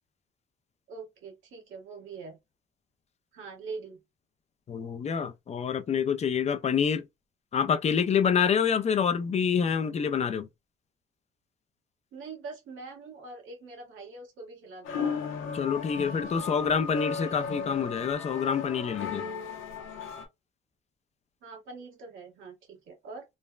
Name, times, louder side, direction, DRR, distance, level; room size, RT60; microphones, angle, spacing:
voice 1, 0.9-2.4 3.3-4.0 12.1-15.2 21.4-23.2, right 4 dB, 80° right, 1.4 m, -43 dB
voice 2, 4.7-7.0 7.5-10.5 15.5-19.2, left 7 dB, 35° left, 0.4 m, -27 dB
sound 1, 14.8-20.3, left 5 dB, 85° left, 0.7 m, -35 dB
3.2 x 2.1 x 2.2 m
cardioid pair, 90°, 20 cm